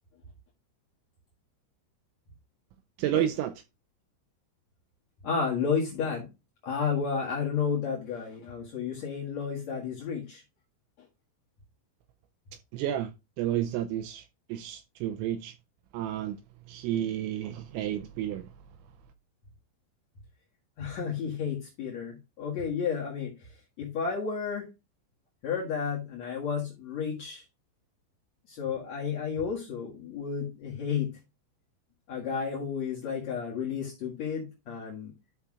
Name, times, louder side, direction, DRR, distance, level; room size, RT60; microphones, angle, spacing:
voice 1, 3.0-3.5 12.7-15.6 15.9-16.4 16.7-18.5, right 12 dB, 85° right, 2.6 m, -31 dB
voice 2, 5.2-6.3 6.6-10.4 20.8-23.5 23.8-24.7 25.4-27.4 28.5-31.1 32.1-35.1, left 6 dB, 65° left, 1.8 m, -32 dB
12.5 x 5.6 x 2.4 m
omnidirectional pair, 5.8 m